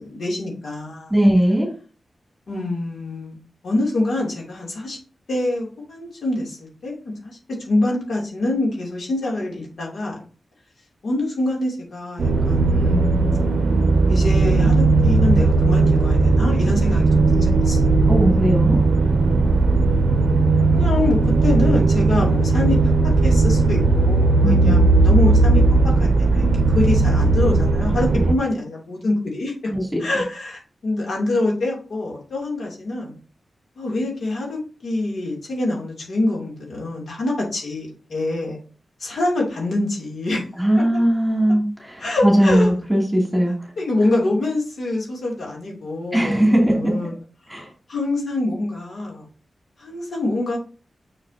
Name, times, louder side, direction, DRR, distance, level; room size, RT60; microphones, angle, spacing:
voice 1, 0.0-1.1 2.5-3.4 3.6-5.0 5.3-7.4 7.7-10.2 11.0-13.2 14.1-17.8 20.7-22.9 23.2-25.6 26.0-29.5 30.0-33.1 33.8-38.6 39.0-40.4 42.0-42.7 43.8-47.1 47.5-49.3 49.8-50.6, left 2 dB, 65° left, -2 dB, 2.9 m, -25 dB
voice 2, 1.1-1.7 18.1-18.8 24.4-25.1 28.2-28.4 29.7-30.0 40.6-43.5 46.1-46.9 47.5-47.7, right 1 dB, 5° right, -2 dB, 2.7 m, -19 dB
sound 1, 12.2-28.3, right 3 dB, 60° right, 0.6 m, -17 dB
6.5 x 6.5 x 2.8 m, 0.36 s
wide cardioid pair, 155°, 0 cm